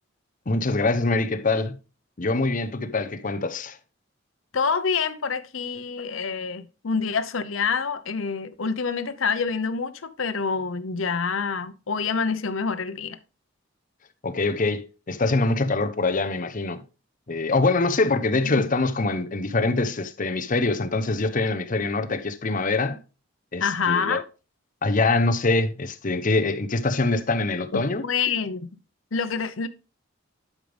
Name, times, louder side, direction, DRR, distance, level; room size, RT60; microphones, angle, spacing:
voice 1, 0.5-1.8 2.2-3.8 14.2-16.8 17.3-23.0 23.5-24.2 24.8-28.0, left 3 dB, 45° left, 0.8 m, -24 dB
voice 2, 4.5-13.2 23.6-24.2 27.7-28.7 29.1-29.7, left 5 dB, 85° left, 0.8 m, -27 dB
11.5 x 5.2 x 3.4 m
head